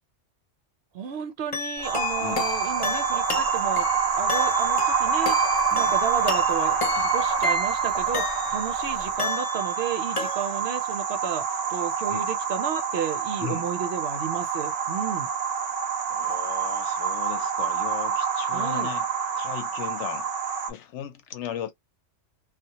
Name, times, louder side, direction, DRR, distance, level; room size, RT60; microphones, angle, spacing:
voice 1, 0.9-3.9 4.2-15.3 18.5-18.9, right 7 dB, 65° right, 0.7 m, -32 dB
sound 1, 1.5-8.8 9.2-9.9 10.2-10.8, left 4 dB, 50° left, 0.4 m, -32 dB
sound 2, 1.8-9.2, left 3 dB, 35° left, 0.8 m, -44 dB
sound 3, 1.8-20.7, right 6 dB, 85° right, 0.3 m, -27 dB
voice 2, 16.1-19.1 19.4-20.3 20.7-21.7, left 9 dB, 70° left, 0.8 m, -36 dB
2.2 x 2.0 x 2.8 m
omnidirectional pair, 1.3 m